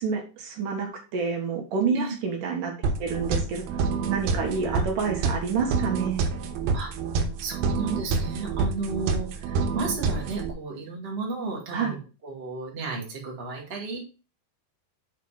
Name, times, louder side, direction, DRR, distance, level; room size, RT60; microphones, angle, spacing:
voice 1, 0.0-2.7 3.0-3.6 4.1-6.2 11.7-12.0, right 5 dB, 65° right, 2 dB, 2.8 m, -28 dB
sound 1, 2.8-10.5, right 4 dB, 90° right, 2.8 m, -27 dB
voice 2, 7.4-14.0, right 4 dB, 20° right, -1 dB, 1.8 m, -33 dB
7.6 x 4.6 x 5.0 m, 0.33 s
omnidirectional pair, 4.2 m